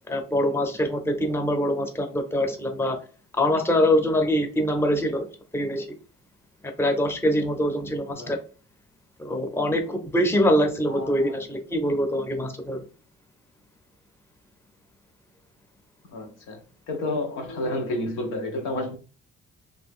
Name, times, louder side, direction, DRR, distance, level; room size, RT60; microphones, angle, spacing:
voice 1, 0.1-3.0 3.3-5.3 5.5-6.0 6.6-8.4 9.2-12.8, equal, 10° left, 0.7 m, -24 dB
voice 2, 10.9-11.3 16.1-16.6 16.9-19.0, left 1 dB, 90° left, 0.9 m, -30 dB
2.8 x 2.6 x 3.5 m
cardioid pair, 90°, 30 cm